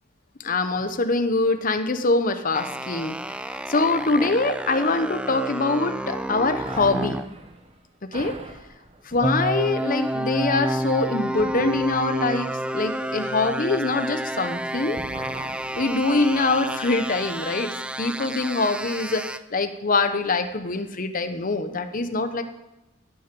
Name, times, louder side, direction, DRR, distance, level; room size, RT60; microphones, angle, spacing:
voice 1, 0.4-3.2 3.7-7.2 8.1-8.4 9.0-15.0 15.8-19.2 19.5-22.4, left 3 dB, 45° left, 9 dB, 0.9 m, -24 dB
sound 1, 2.5-7.3 9.2-19.4, right 1 dB, 5° right, 0.3 m, -30 dB
sound 2, 6.6-14.6 14.9-17.2, right 1 dB, 30° right, 1.0 m, -43 dB
17.0 x 6.7 x 6.9 m, 0.95 s
head